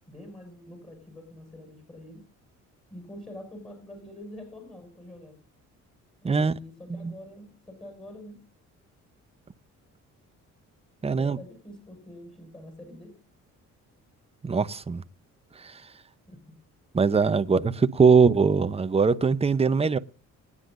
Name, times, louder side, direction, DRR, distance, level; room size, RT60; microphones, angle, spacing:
voice 1, 0.1-2.2 2.9-5.4 6.2-8.4 11.1-13.2 16.3-16.4, left 1 dB, 15° left, 5.9 m, -45 dB
voice 2, 11.0-11.4 14.4-15.0 15.6-15.9 16.9-20.0, right 5 dB, 20° right, 0.8 m, -22 dB
24.5 x 9.8 x 2.6 m
cardioid pair, 90°, 30 cm